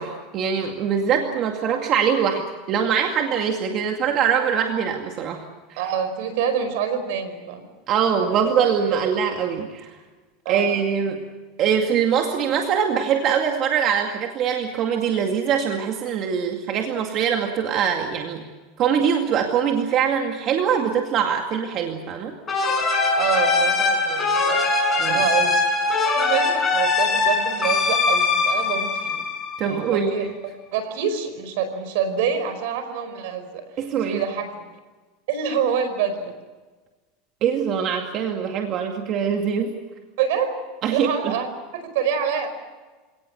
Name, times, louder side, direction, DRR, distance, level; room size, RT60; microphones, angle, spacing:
voice 1, 0.0-5.4 5.7-5.8 7.9-9.9 10.5-11.2 11.6-18.4 18.8-22.3 25.0-25.2 29.6-30.1 33.8-34.2 37.4-39.7 40.8-41.4, right 7 dB, 40° right, 3 dB, 2.2 m, -23 dB
voice 2, 5.8-7.7 8.9-9.1 10.4-10.7 23.2-24.7 25.1-25.6 26.2-29.2 29.6-30.2 30.7-33.6 34.1-34.7 35.3-36.3 40.2-40.6 40.9-41.5 41.7-42.5, right 7 dB, 75° right, 10 dB, 5.1 m, -26 dB
sound 1, 22.5-29.9, left 3 dB, 20° left, 6.3 m, -21 dB
28.0 x 18.0 x 8.1 m, 1.3 s
supercardioid pair, 140°, 0 cm